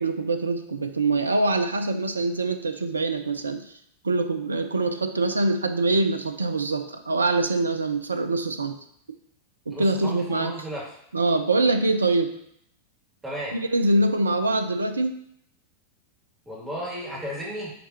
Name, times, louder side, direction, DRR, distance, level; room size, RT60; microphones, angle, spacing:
voice 1, 0.0-3.7 4.0-8.8 9.7-10.5 11.1-12.4 13.5-15.2, right 2 dB, 75° right, 9 dB, 0.5 m, -24 dB
voice 2, 9.7-10.9 13.2-13.6 16.5-17.7, equal, 10° right, -5 dB, 2.4 m, -34 dB
9.5 x 3.6 x 2.9 m, 0.72 s
figure-of-eight pair, 90°, 0 cm